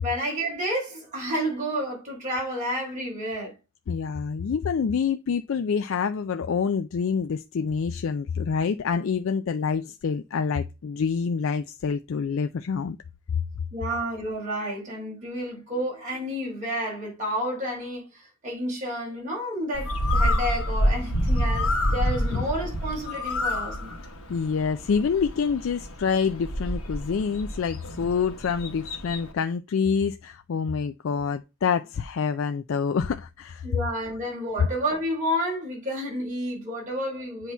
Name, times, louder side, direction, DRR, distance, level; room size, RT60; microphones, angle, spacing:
voice 1, 0.0-3.5 13.7-24.0 33.6-37.5, equal, 35° right, 3.7 m, -30 dB
voice 2, 3.9-13.0 13.3-13.4 22.3-22.4 24.3-33.7, left 6 dB, 65° left, 0.4 m, -27 dB
Bird, 19.7-29.3, equal, 80° left, 1.3 m, -28 dB
8.1 x 2.9 x 5.5 m
head